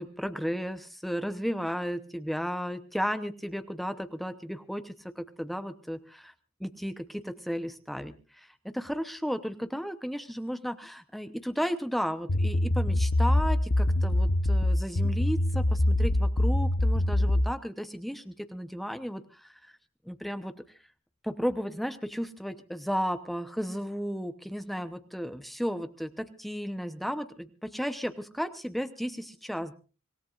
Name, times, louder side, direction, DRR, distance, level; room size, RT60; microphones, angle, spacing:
voice 1, 0.0-6.3 6.6-19.7 20.0-20.5 21.2-29.7, equal, ahead, 9 dB, 0.8 m, -34 dB
sound 1, 12.3-17.5, left 1 dB, 60° left, 1.0 m, -24 dB
26.0 x 17.0 x 2.5 m, 0.34 s
head